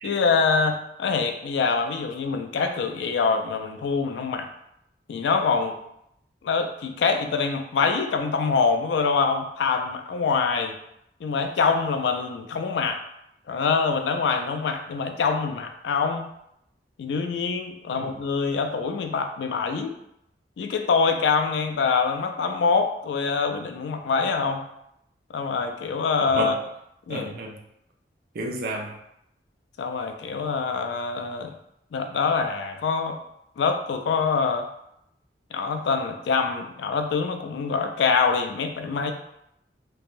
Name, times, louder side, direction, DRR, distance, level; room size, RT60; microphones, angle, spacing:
voice 1, 0.0-4.5 5.1-5.7 6.4-10.7 11.2-13.0 13.5-16.2 17.0-20.0 20.6-24.6 25.3-26.6 27.1-27.4 29.8-31.6 31.9-33.2 33.6-34.7 35.5-39.1, left 5 dB, 80° left, 6 dB, 0.3 m, -25 dB
voice 2, 27.1-27.6 28.3-29.0, right 2 dB, 60° right, 0 dB, 0.5 m, -31 dB
3.3 x 2.2 x 2.5 m, 0.77 s
head